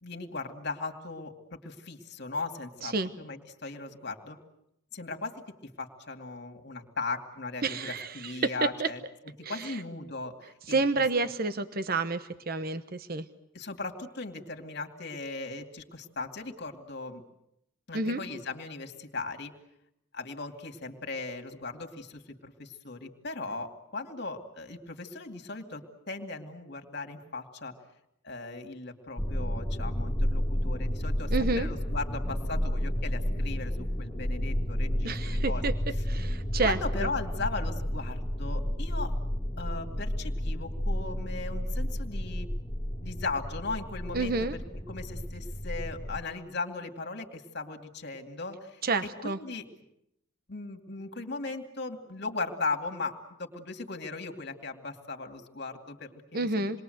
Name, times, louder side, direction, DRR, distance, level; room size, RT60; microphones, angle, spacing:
voice 1, 0.0-4.4 4.9-5.4 5.8-9.0 9.5-11.0 13.5-17.2 17.9-19.5 20.1-27.7 28.2-35.6 36.6-39.1 39.6-42.5 43.0-44.3 44.9-48.8 49.2-49.6 50.5-56.8, left 3 dB, 55° left, 5 dB, 2.6 m, -38 dB
voice 2, 7.6-8.9 9.4-9.8 10.7-13.3 17.9-18.2 31.3-31.7 35.0-35.7 36.1-37.1 44.1-44.5 48.8-49.4 56.3-56.8, right 3 dB, 45° right, 11 dB, 1.0 m, -29 dB
sound 1, 29.2-46.2, equal, 15° left, 1.5 m, -31 dB
28.0 x 21.5 x 8.0 m, 0.79 s
head